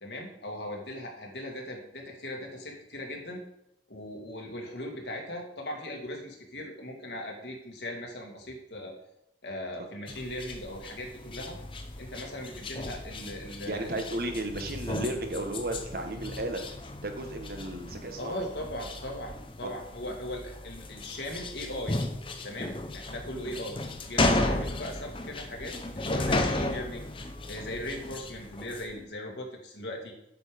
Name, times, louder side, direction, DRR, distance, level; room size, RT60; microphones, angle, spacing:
voice 1, 0.0-3.4 3.9-8.9 9.4-11.6 12.0-14.0 18.2-22.0 22.4-23.8 24.1-27.0 27.5-30.1, left 1 dB, 70° left, 1 dB, 2.2 m, -39 dB
sound 1, 10.1-28.9, left 2 dB, 30° left, 0.8 m, -34 dB
voice 2, 13.7-16.6 17.0-18.5 19.6-19.7, right 1 dB, 55° right, 5 dB, 1.3 m, -34 dB
8.4 x 6.8 x 5.2 m, 0.81 s
head